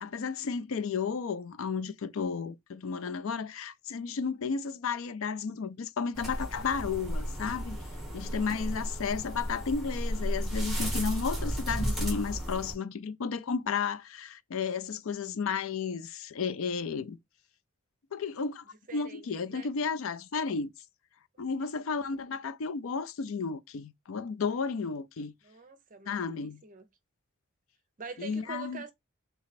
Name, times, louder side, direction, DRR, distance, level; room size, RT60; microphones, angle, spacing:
voice 1, 0.0-7.8 8.1-17.2 18.1-18.6 18.9-20.7 21.4-25.3 26.1-26.6 28.2-28.8, left 5 dB, 65° left, 0.4 m, -33 dB
sound 1, 6.1-12.7, equal, ahead, 1.2 m, -33 dB
voice 2, 8.3-8.8 18.6-19.7 21.3-21.7 25.4-26.8 28.0-28.9, right 5 dB, 35° right, 0.6 m, -46 dB
3.5 x 3.1 x 4.0 m
head